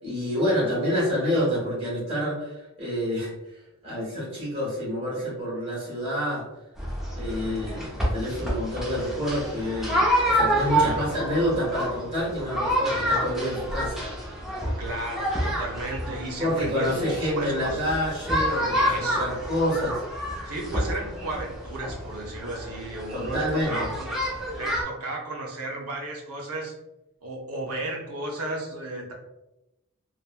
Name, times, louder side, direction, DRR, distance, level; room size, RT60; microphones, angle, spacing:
voice 1, 0.0-3.3 3.8-6.4 7.1-14.0 16.4-20.0 23.1-23.9, equal, 25° right, -7 dB, 1.5 m, -28 dB
sound 1, 6.8-24.8, equal, ahead, 0.6 m, -28 dB
voice 2, 10.7-11.1 14.8-17.9 18.7-19.3 20.4-24.1 24.5-26.7 27.2-29.1, right 2 dB, 80° right, -1 dB, 0.6 m, -34 dB
3.3 x 2.1 x 2.3 m, 0.94 s
head